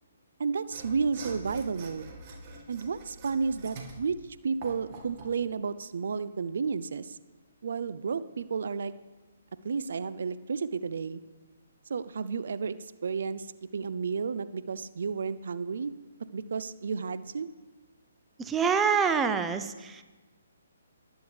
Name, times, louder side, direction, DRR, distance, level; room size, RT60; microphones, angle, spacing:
voice 1, 0.4-2.1 2.7-4.1 4.4-7.2 7.6-8.9 9.6-11.2 11.9-12.8 13.0-13.5 13.7-15.9 16.3-17.5, right 5 dB, 60° right, 15 dB, 0.6 m, -32 dB
Mechanisms / Sawing, 0.6-5.4, right 3 dB, 35° right, 1.8 m, -45 dB
voice 2, 18.4-20.0, right 6 dB, 10° right, 9 dB, 0.6 m, -26 dB
19.0 x 9.1 x 3.4 m, 1.3 s
figure-of-eight pair, 135°, 0 cm